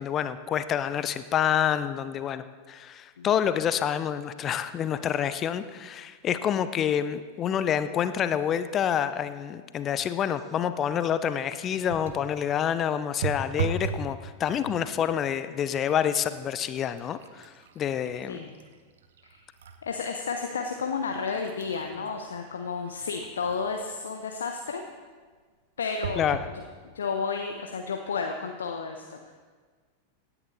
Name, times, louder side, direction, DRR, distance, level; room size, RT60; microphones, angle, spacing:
voice 1, 0.0-18.4 26.2-26.4, left 9 dB, 30° left, 12 dB, 0.6 m, -28 dB
sound 1, 11.9-12.3 13.2-14.1 14.5-15.0 15.7-15.9 16.2-19.8 20.3-20.4 21.1-23.8 26.0-26.5 27.2-27.3 27.6-27.7, right 6 dB, 60° right, 1.0 m, -37 dB
voice 2, 19.8-24.9 25.8-26.6 26.9-29.3, left 5 dB, 65° left, 4 dB, 0.8 m, -32 dB
16.5 x 10.0 x 4.1 m, 1.5 s
figure-of-eight pair, 90°, 0 cm